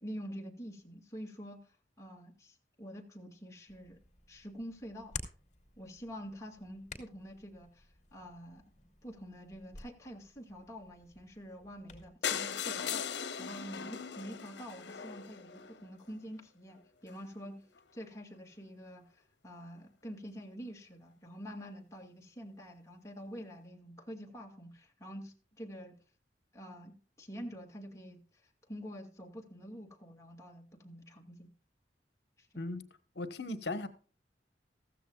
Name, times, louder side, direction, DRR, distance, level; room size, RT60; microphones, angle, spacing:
voice 1, 0.0-4.0 4.3-5.1 5.8-8.6 9.0-17.6 17.9-19.0 19.4-26.0 26.5-28.2 28.7-31.5 32.4-32.6, equal, 20° left, 2.3 m, -47 dB
Hands, 3.7-12.1, left 4 dB, 45° left, 2.5 m, -51 dB
sound 1, 12.2-16.1 16.8-16.9 17.1-17.2 17.5-17.6 17.8-17.9, left 7 dB, 90° left, 0.9 m, -38 dB
voice 2, 32.6-32.9 33.1-33.9, left 2 dB, 70° left, 1.2 m, -37 dB
15.0 x 14.5 x 2.3 m
head